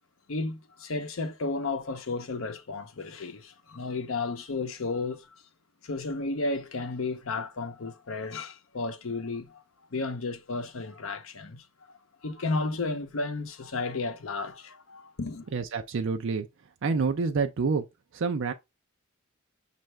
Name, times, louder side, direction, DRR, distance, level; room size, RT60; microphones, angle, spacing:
voice 1, 0.3-5.3 5.8-9.6 9.9-15.4, left 3 dB, 70° left, 0.7 m, -33 dB
voice 2, 15.5-16.5 16.8-17.8 18.1-18.5, right 4 dB, 65° right, 0.4 m, -27 dB
5.6 x 2.5 x 3.2 m
head